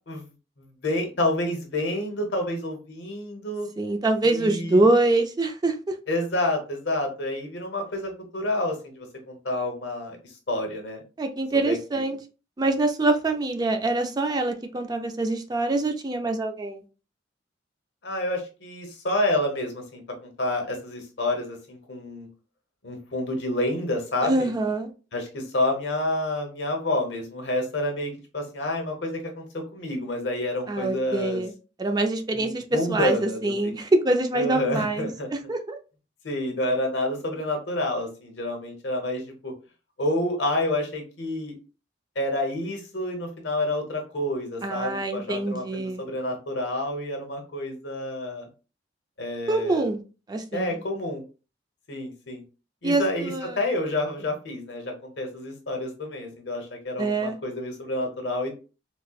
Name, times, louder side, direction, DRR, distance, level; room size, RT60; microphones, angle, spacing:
voice 1, 0.6-3.7 4.2-4.8 6.1-11.0 11.6-12.0 18.0-22.3 22.8-24.5 25.1-31.4 32.3-33.7 34.3-35.3 36.2-39.5 40.0-41.6 42.1-48.5 49.2-49.9 50.5-51.2 51.9-52.4 52.8-58.5, left 1 dB, 75° left, 1.0 m, -29 dB
voice 2, 3.8-5.9 11.2-12.2 12.6-16.8 24.2-24.9 30.7-31.5 31.8-32.6 32.9-35.1 35.5-35.8 44.6-46.0 49.5-50.0 50.3-50.8 52.8-53.6 57.0-57.3, right 2 dB, 20° right, 0.4 m, -25 dB
4.1 x 2.1 x 2.3 m
head